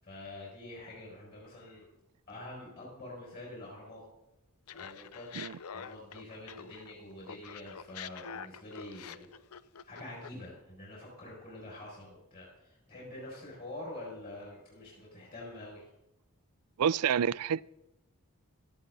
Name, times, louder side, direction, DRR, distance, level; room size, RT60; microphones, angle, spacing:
voice 1, 0.0-1.8 2.3-4.0 4.7-5.3 5.7-9.3 9.9-15.9, left 1 dB, 45° left, 6.2 m, -46 dB
Laughter, 4.7-6.9 7.2-10.5, left 7 dB, 75° left, 0.6 m, -46 dB
voice 2, 16.8-17.6, right 8 dB, 85° right, 0.4 m, -28 dB
17.5 x 14.5 x 4.0 m
head